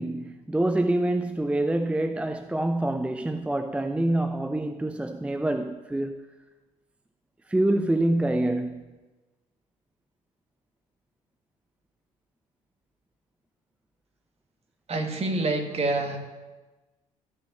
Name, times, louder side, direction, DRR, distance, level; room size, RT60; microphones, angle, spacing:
voice 1, 0.0-6.3 7.5-8.9, right 1 dB, 5° right, 0.6 m, -26 dB
voice 2, 14.9-16.2, right 2 dB, 35° right, 2.1 m, -27 dB
13.0 x 5.9 x 8.4 m
hypercardioid pair, 60°, 18 cm